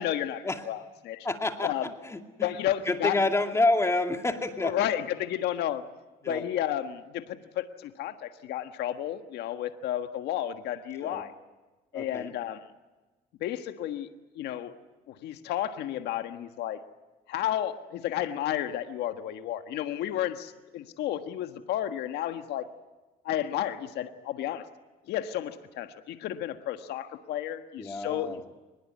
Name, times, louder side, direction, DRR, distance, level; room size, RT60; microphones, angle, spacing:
voice 1, 0.0-1.3 1.6-1.9 2.4-3.2 4.6-5.8 6.2-11.3 11.9-12.6 13.4-14.1 14.3-14.7 15.1-16.8 17.3-22.6 23.2-24.7 25.1-28.4, left 11 dB, 80° left, 8 dB, 1.5 m, -32 dB
voice 2, 1.2-1.7 2.0-2.5 2.8-4.7 6.2-6.4 11.0-11.2 11.9-12.3 27.8-28.4, left 2 dB, 15° left, 5 dB, 2.4 m, -28 dB
23.5 x 20.5 x 9.4 m, 1.2 s
cardioid pair, 110°, 17 cm